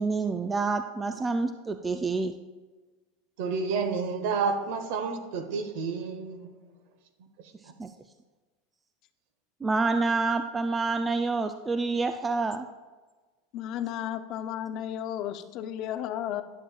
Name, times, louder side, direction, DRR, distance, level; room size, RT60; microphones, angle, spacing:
voice 1, 0.0-2.3 7.8-7.9 9.6-12.7, right 3 dB, 15° right, 0.3 m, -27 dB
voice 2, 3.4-6.5, right 5 dB, 65° right, 1.0 m, -30 dB
voice 3, 13.5-16.4, left 10 dB, 45° left, 0.5 m, -33 dB
11.5 x 7.4 x 2.3 m
supercardioid pair, 140°, 0 cm